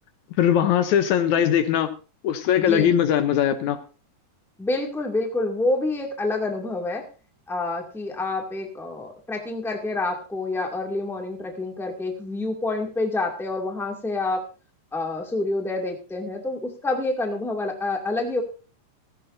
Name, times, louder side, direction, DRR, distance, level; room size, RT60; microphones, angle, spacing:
voice 1, 0.4-1.9 2.2-3.8, left 9 dB, 75° left, 11 dB, 2.1 m, -20 dB
voice 2, 2.6-2.9 4.6-7.0 7.5-14.5 14.9-18.4, left 2 dB, ahead, 2 dB, 1.6 m, -27 dB
16.0 x 15.0 x 2.6 m, 0.34 s
omnidirectional pair, 3.5 m